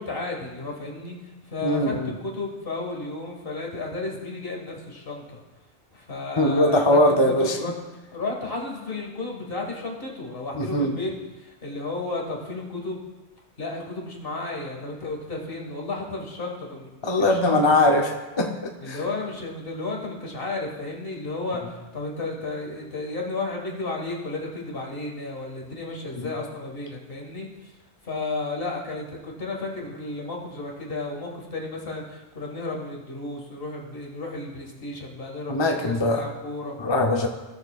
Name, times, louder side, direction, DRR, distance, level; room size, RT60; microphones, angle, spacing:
voice 1, 0.0-1.9 2.2-5.4 5.9-7.0 7.3-7.7 8.1-13.0 13.6-16.9 17.2-17.6 18.8-27.8 28.0-36.8, left 2 dB, 55° left, 0 dB, 1.8 m, -33 dB
voice 2, 1.6-2.1 6.4-7.6 10.6-11.0 17.0-18.5 18.9-19.0 26.2-26.3 35.5-36.2 36.8-37.3, left 1 dB, 30° left, 1 dB, 0.6 m, -21 dB
16.0 x 6.6 x 2.4 m, 1.1 s
omnidirectional pair, 1.2 m